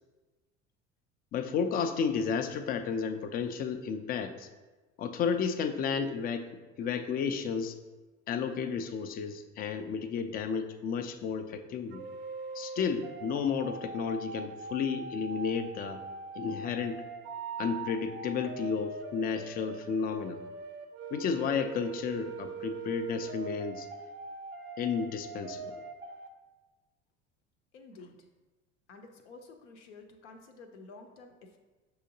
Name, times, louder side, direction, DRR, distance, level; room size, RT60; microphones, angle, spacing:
voice 1, 1.3-4.5 5.0-6.5 6.8-7.8 8.3-12.0 12.5-16.0 16.3-17.0 17.6-20.4 21.1-23.9 24.8-25.8, left 6 dB, 25° left, 9 dB, 0.3 m, -32 dB
sound 1, 11.9-26.3, right 4 dB, 35° right, 0.5 m, -42 dB
voice 2, 27.7-28.3 28.9-31.6, left 3 dB, 70° left, 4 dB, 0.6 m, -51 dB
6.1 x 2.8 x 2.7 m, 1.2 s
figure-of-eight pair, 70°, 36 cm